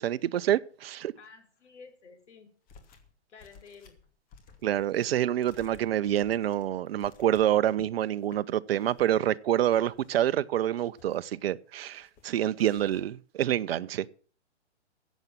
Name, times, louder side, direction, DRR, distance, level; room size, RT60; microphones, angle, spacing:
voice 1, 0.0-1.1 4.6-14.1, right 11 dB, 55° right, 0.8 m, -27 dB
voice 2, 1.2-2.5 3.3-4.0, left 5 dB, 75° left, 4.9 m, -52 dB
sound 1, 2.7-3.1 3.4-7.9 8.2-8.4 8.8-9.2 9.6-10.4 10.7-11.3 11.9-12.3 12.5-13.2, left 6 dB, 25° left, 2.6 m, -56 dB
14.5 x 8.3 x 7.5 m
hypercardioid pair, 135°, 35 cm